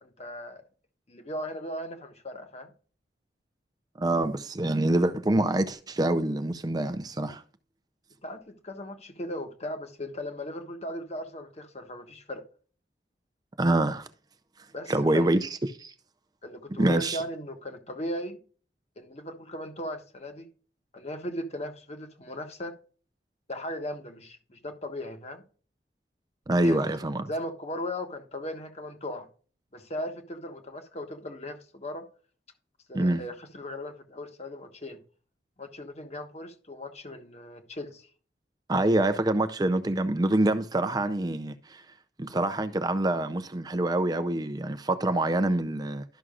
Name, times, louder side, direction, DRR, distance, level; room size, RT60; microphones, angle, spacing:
voice 1, 0.0-0.6 1.1-2.7 8.2-12.4 14.7-15.3 16.4-18.4 19.0-20.5 20.9-22.7 23.5-25.4 26.6-26.8 27.3-29.3 29.7-32.0 32.9-35.0 35.6-38.1, left 1 dB, 35° left, 1.3 m, -37 dB
voice 2, 4.0-7.4 13.6-14.1 14.9-15.5 15.8-15.9 16.8-17.2 26.5-27.3 32.9-33.2 38.7-41.8 42.2-46.0, right 1 dB, 20° right, 0.5 m, -26 dB
12.5 x 6.1 x 2.4 m
head